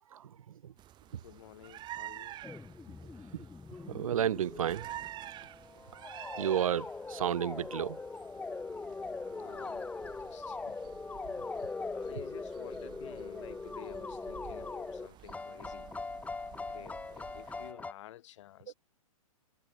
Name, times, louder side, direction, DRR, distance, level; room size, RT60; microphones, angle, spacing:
voice 1, 0.1-0.7 1.1-1.2 3.3-3.5 3.9-4.9 6.4-8.0 18.7-18.8, right 10 dB, 70° right, 2.3 m, -32 dB
sound 1, 0.8-17.7, right 13 dB, 25° right, 2.0 m, -50 dB
voice 2, 1.1-2.4 2.9-3.0 9.3-10.8 11.1-11.5 11.9-15.9 16.5-18.7, left 13 dB, 55° left, 6.3 m, -52 dB
sound 2, 2.4-17.9, left 3 dB, 10° left, 3.8 m, -41 dB
hypercardioid pair, 135°, 18 cm